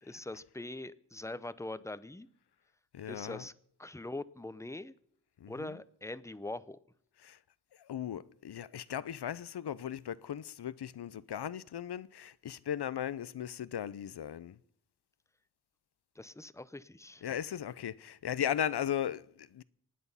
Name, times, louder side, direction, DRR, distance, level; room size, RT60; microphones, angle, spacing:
voice 1, 0.0-2.3 3.1-3.5 3.8-4.9 5.5-6.8 16.2-17.3, left 2 dB, 10° left, 0.7 m, -42 dB
voice 2, 2.9-3.4 5.4-5.8 7.2-7.4 7.9-14.6 17.2-19.6, left 10 dB, 85° left, 0.6 m, -37 dB
25.0 x 9.4 x 5.6 m
wide cardioid pair, 75°, 39 cm